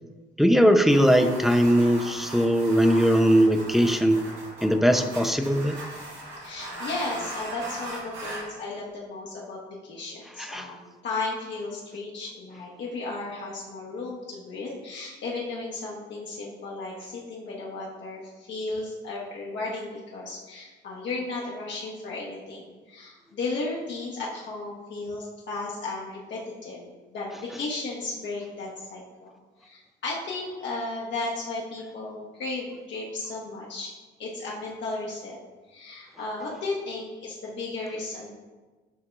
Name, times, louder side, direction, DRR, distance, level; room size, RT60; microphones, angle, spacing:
voice 1, 0.4-4.3 4.6-5.7 10.4-10.7, equal, ahead, 6 dB, 0.3 m, -20 dB
sound 1, 0.9-8.5, right 1 dB, 80° right, 1.5 m, -38 dB
voice 2, 6.4-29.3 29.6-33.9 34.2-35.4 35.7-38.4, left 3 dB, 65° left, -4 dB, 0.9 m, -34 dB
8.3 x 2.8 x 2.3 m, 1.2 s
cardioid pair, 90°, 20 cm